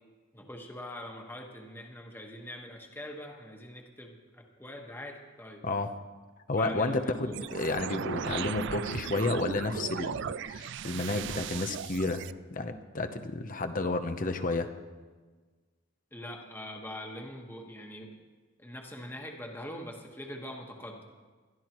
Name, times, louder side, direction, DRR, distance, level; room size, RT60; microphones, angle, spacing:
voice 1, 0.3-5.6 6.6-7.5 16.1-18.2 18.6-21.1, left 1 dB, 10° left, 1 dB, 1.5 m, -43 dB
voice 2, 6.5-12.2 12.5-14.7, left 2 dB, 40° left, 8 dB, 0.8 m, -31 dB
sound 1, 7.3-12.3, right 7 dB, 60° right, 0.4 m, -37 dB
22.0 x 13.0 x 3.1 m, 1.4 s
head